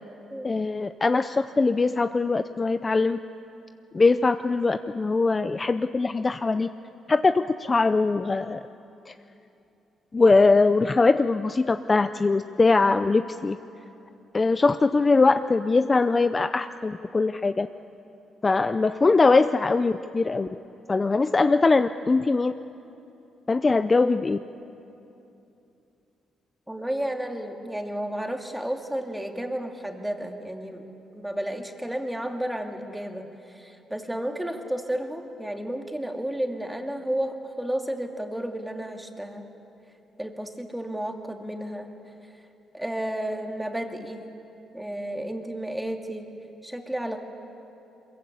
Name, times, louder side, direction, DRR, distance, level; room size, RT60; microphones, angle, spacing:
voice 1, 0.4-3.2 3.9-6.7 7.1-8.6 9.1-9.2 10.1-13.6 14.3-17.7 18.4-20.5 20.9-22.5 23.5-24.4, left 3 dB, 25° left, 10 dB, 0.5 m, -21 dB
voice 2, 26.7-30.8 31.1-39.4 40.2-41.9 42.7-44.2 44.7-46.3 46.6-47.2, right 1 dB, 5° right, 3 dB, 2.4 m, -32 dB
23.0 x 22.0 x 8.5 m, 2.9 s
cardioid pair, 90°, 0 cm